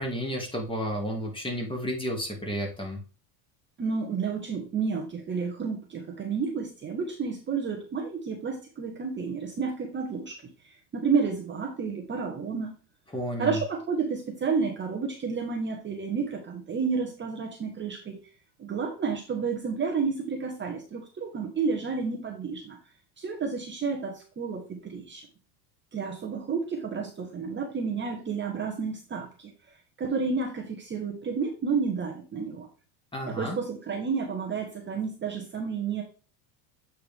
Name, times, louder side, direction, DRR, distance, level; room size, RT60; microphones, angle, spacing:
voice 1, 0.0-3.0 13.1-13.6 33.1-33.6, equal, 10° left, 1 dB, 2.0 m, -32 dB
voice 2, 3.8-12.8 13.4-18.2 18.6-22.8 23.2-25.3 25.9-29.5 30.0-32.7 33.3-36.0, right 5 dB, 25° right, 1 dB, 1.1 m, -31 dB
8.0 x 4.6 x 3.5 m, 0.37 s
supercardioid pair, 120°, 49 cm